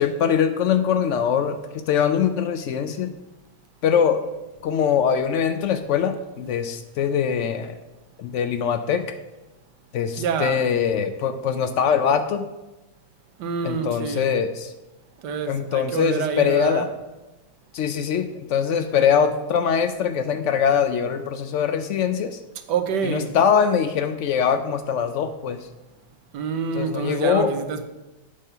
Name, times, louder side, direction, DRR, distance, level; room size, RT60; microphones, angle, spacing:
voice 1, 0.0-3.1 3.8-4.2 4.6-7.8 8.2-9.0 9.9-12.4 13.6-14.7 15.5-16.9 17.7-22.4 23.0-25.6 26.8-27.5, left 7 dB, 75° left, 0.6 m, -22 dB
voice 2, 10.2-10.7 13.4-14.3 15.2-16.8 19.0-19.3 22.7-23.4 26.3-27.8, right 6 dB, 90° right, 1.4 m, -27 dB
8.3 x 5.4 x 5.5 m
omnidirectional pair, 1.8 m